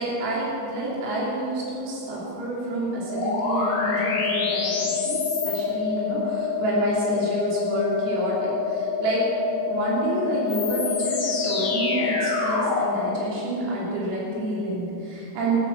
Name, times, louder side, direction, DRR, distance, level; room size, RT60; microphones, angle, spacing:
voice 1, 0.0-9.2 9.7-15.6, right 1 dB, 90° right, -5 dB, 6.1 m, -28 dB
sound 1, 3.1-13.0, left 5 dB, 55° left, 2.9 m, -26 dB
14.5 x 13.0 x 5.9 m, 2.8 s
omnidirectional pair, 5.9 m